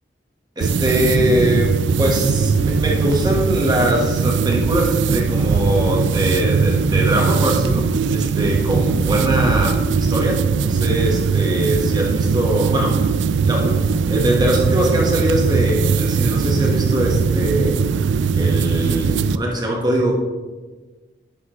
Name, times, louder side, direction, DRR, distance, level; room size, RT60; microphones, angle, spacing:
voice 1, 0.6-13.0 13.5-17.8 18.4-20.1, right 1 dB, 20° right, -1 dB, 1.3 m, -22 dB
sound 1, 0.6-19.4, right 5 dB, 80° right, 0.3 m, -19 dB
10.5 x 6.0 x 3.1 m, 1.3 s
head